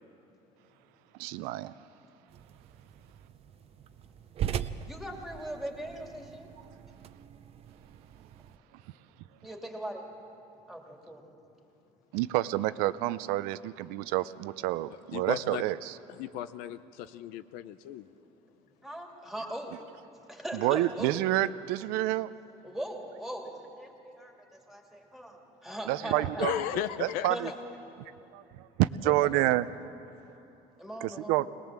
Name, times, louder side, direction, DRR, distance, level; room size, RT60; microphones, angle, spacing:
voice 1, 1.2-1.7 12.1-16.0 20.5-22.3 25.9-26.5 27.0-27.5 28.3-29.7 31.0-31.5, right 16 dB, 90° right, 15 dB, 0.6 m, -28 dB
sound 1, 2.3-8.6, right 9 dB, 45° right, 0.6 m, -40 dB
voice 2, 4.8-6.5 9.4-10.0 10.7-11.2 18.8-19.8 20.3-21.2 22.6-26.5 27.3-27.8 29.3-29.6 30.8-31.5, equal, ahead, 1 dB, 2.5 m, -40 dB
voice 3, 15.1-15.6 16.2-18.1 26.4-27.3, left 11 dB, 75° left, 12 dB, 0.7 m, -35 dB
22.5 x 19.5 x 7.5 m, 2.8 s
cardioid pair, 135°, 15 cm